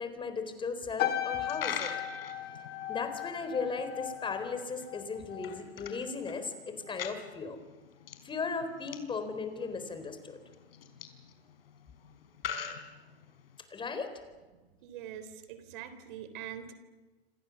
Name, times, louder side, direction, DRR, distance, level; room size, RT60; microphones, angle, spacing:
voice 1, 0.0-1.9 2.9-7.6 8.2-10.4 13.7-14.1, left 4 dB, 15° left, 9 dB, 4.1 m, -36 dB
sound 1, 1.0-5.6 5.9-6.3, left 11 dB, 35° left, 2.3 m, -36 dB
Coin (dropping), 1.3-13.6, left 8 dB, 70° left, 4.6 m, -45 dB
voice 2, 14.8-16.7, right 9 dB, 55° right, 11 dB, 3.6 m, -43 dB
28.0 x 27.0 x 7.2 m, 1.3 s
hypercardioid pair, 120°, 30 cm